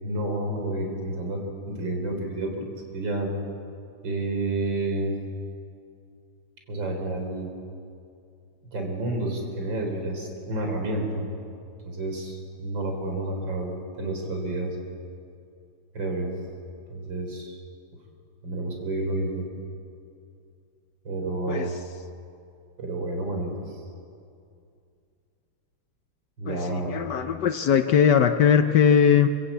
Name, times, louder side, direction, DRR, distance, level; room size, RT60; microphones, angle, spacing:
voice 1, 0.0-2.7 2.9-3.3 4.0-5.2 6.7-7.5 8.7-11.3 11.8-14.8 15.9-16.3 16.9-17.6 18.4-19.5 21.0-21.7 22.8-23.5 26.4-27.0, right 2 dB, 60° right, 2 dB, 4.3 m, -30 dB
voice 2, 26.5-29.3, left 8 dB, 65° left, 8 dB, 1.2 m, -20 dB
26.5 x 15.5 x 8.5 m, 2.5 s
omnidirectional pair, 2.3 m